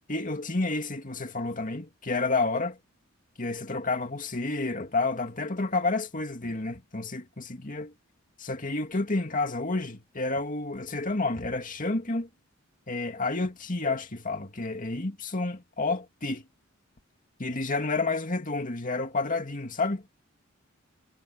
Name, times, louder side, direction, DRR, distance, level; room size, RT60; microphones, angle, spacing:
voice 1, 0.1-2.8 3.4-7.9 8.4-12.3 12.9-16.4 17.4-20.0, left 3 dB, 40° left, 2.4 m, -30 dB
head